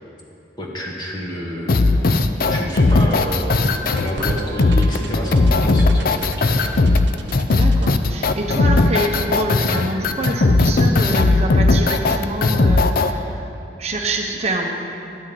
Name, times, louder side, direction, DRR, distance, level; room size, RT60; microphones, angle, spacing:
voice 1, 0.6-2.1 2.5-6.8, equal, 25° left, -3 dB, 1.7 m, -29 dB
sound 1, 1.7-13.1, left 3 dB, 55° left, 0.5 m, -17 dB
sound 2, 2.9-10.2, right 2 dB, 90° right, 0.8 m, -33 dB
voice 2, 7.5-13.4 13.8-14.7, right 1 dB, 35° right, 1 dB, 0.8 m, -26 dB
11.0 x 6.3 x 9.1 m, 2.8 s
head